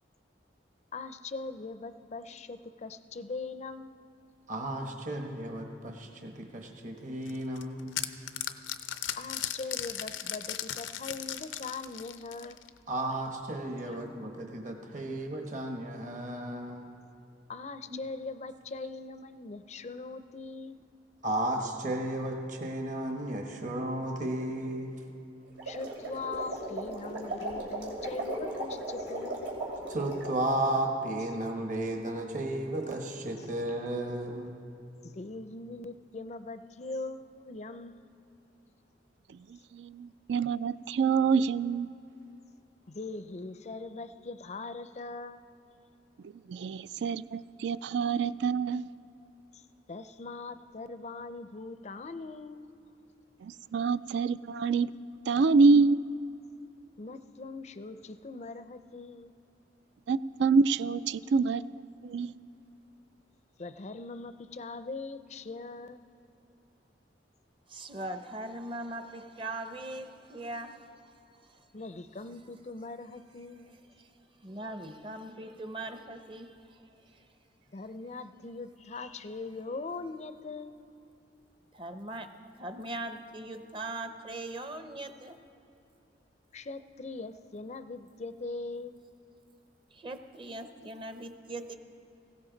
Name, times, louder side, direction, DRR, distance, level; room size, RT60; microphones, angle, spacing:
voice 1, 0.9-3.9 9.2-12.6 13.8-14.0 15.0-15.1 17.5-20.8 25.7-29.5 35.0-38.0 42.9-45.4 49.5-52.7 57.0-59.3 63.6-66.1 71.7-73.7 77.7-80.9 86.5-89.0, left 3 dB, 35° left, 11 dB, 0.5 m, -41 dB
voice 2, 4.5-8.1 12.9-16.9 21.2-25.0 29.9-34.6, right 1 dB, 45° right, 2 dB, 1.1 m, -34 dB
sound 1, 7.3-12.8, left 11 dB, 90° left, 0.6 m, -37 dB
sound 2, 25.5-30.4, right 1 dB, 90° right, 2.9 m, -37 dB
voice 3, 39.3-41.9 46.2-48.9 53.4-56.0 60.1-61.6 62.0-62.3, right 4 dB, 70° right, 16 dB, 0.3 m, -26 dB
voice 4, 67.7-70.9 71.5-71.6 74.0-74.1 74.4-76.8 77.1-77.2 81.7-82.3 82.5-85.4 89.9-91.7, right 2 dB, 25° right, 8 dB, 0.7 m, -40 dB
18.5 x 16.5 x 3.9 m, 2.7 s
head